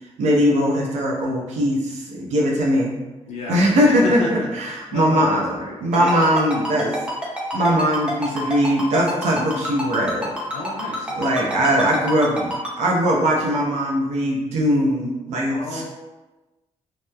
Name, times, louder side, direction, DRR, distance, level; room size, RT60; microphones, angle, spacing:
voice 1, 0.2-3.0 3.5-7.0 7.5-10.3 11.2-15.9, equal, 85° right, -2 dB, 0.6 m, -20 dB
voice 2, 3.3-4.5 4.9-6.2 10.5-11.4 15.5-15.9, left 1 dB, 80° left, -3 dB, 0.5 m, -32 dB
Ringtone, 5.9-12.7, equal, 10° right, 0.5 m, -27 dB
2.8 x 2.0 x 2.2 m, 1.1 s
wide cardioid pair, 155°, 11 cm